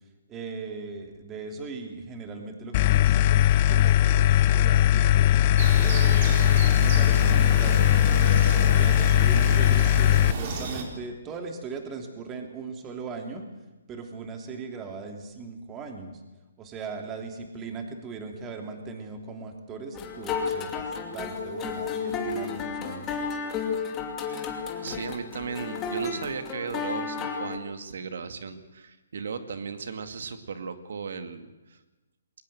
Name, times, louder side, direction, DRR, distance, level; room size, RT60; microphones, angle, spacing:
voice 1, 0.3-5.3 5.8-6.3 6.8-8.2 8.7-13.4 13.9-16.2 16.6-23.3, right 4 dB, 20° right, 4 dB, 3.0 m, -39 dB
sound 1, 2.7-10.3, left 12 dB, 35° left, 0.7 m, -19 dB
sound 2, 5.6-10.8, right 4 dB, 40° right, 4.2 m, -32 dB
sound 3, 19.9-27.6, left 5 dB, 20° left, 2.7 m, -32 dB
voice 2, 24.8-31.8, right 5 dB, 70° right, 9 dB, 2.3 m, -36 dB
22.0 x 18.5 x 7.9 m, 1.1 s
hypercardioid pair, 155°, 0 cm